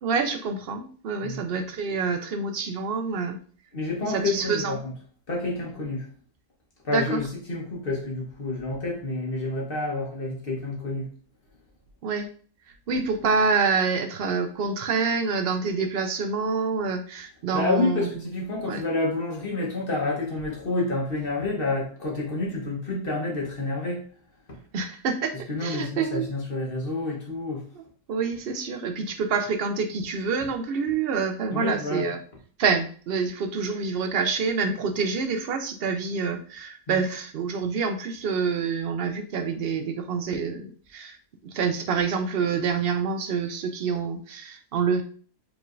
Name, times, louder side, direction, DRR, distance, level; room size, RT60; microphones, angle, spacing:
voice 1, 0.0-3.4 4.1-4.8 6.9-7.2 12.0-12.3 12.9-18.1 18.6-18.8 24.7-25.3 25.6-26.2 28.1-32.2 32.6-41.2 41.4-45.0, right 5 dB, 70° right, 6 dB, 0.5 m, -27 dB
voice 2, 3.7-4.9 5.3-6.1 6.8-11.1 17.5-24.0 24.5-24.6 25.5-27.7 31.5-32.1 36.9-37.0, left 2 dB, 40° left, -2 dB, 1.2 m, -29 dB
4.9 x 3.3 x 2.5 m, 0.44 s
omnidirectional pair, 1.6 m